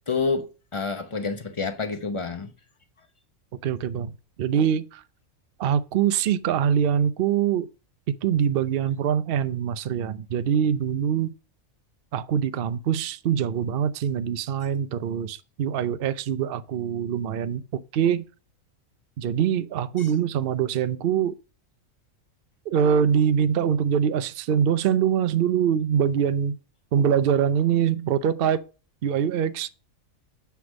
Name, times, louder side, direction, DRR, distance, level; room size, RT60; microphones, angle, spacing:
voice 1, 0.1-2.5 20.0-20.1, left 4 dB, 30° left, 0.6 m, -28 dB
voice 2, 3.6-4.1 4.4-5.0 5.6-7.7 8.2-11.3 12.1-18.3 19.2-21.3 22.7-26.6 26.9-28.6 29.0-29.7, right 8 dB, 65° right, 0.5 m, -24 dB
7.8 x 3.4 x 6.2 m
omnidirectional pair, 1.5 m